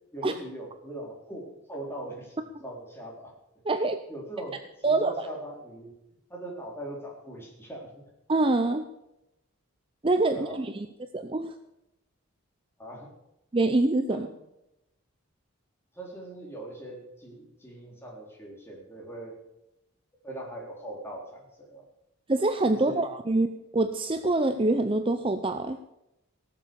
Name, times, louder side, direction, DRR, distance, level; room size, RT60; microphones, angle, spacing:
voice 1, 0.1-2.4 2.6-3.4 4.1-5.9 6.3-8.0 8.6-8.7 10.3-10.6 12.8-13.1 14.1-14.3 15.9-19.4 20.2-21.8 22.8-23.1, right 1 dB, 10° left, -2 dB, 3.7 m, -41 dB
voice 2, 3.6-4.0 4.8-5.3 8.3-8.8 10.0-10.9 11.1-11.5 13.5-14.3 22.3-23.5 23.7-25.8, right 2 dB, 25° right, 9 dB, 0.5 m, -25 dB
18.0 x 7.5 x 7.0 m, 0.88 s
head